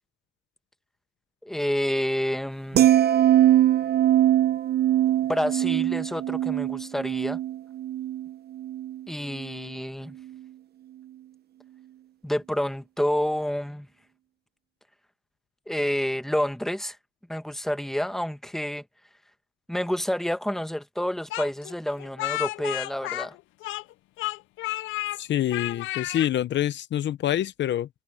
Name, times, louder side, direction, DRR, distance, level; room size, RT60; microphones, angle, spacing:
voice 1, 1.4-2.9 5.3-7.4 9.1-10.1 12.2-13.9 15.7-17.0 17.3-18.8 19.7-23.3, equal, ahead, 1.4 m, -29 dB
sound 1, 2.8-9.0 9.4-9.7, right 12 dB, 55° right, 0.7 m, -22 dB
Speech, 21.3-23.9 24.2-25.2 25.5-26.3, left 18 dB, 80° left, 0.4 m, -31 dB
voice 2, 25.2-27.9, left 12 dB, 65° left, 0.8 m, -26 dB
cardioid pair, 90°, 20 cm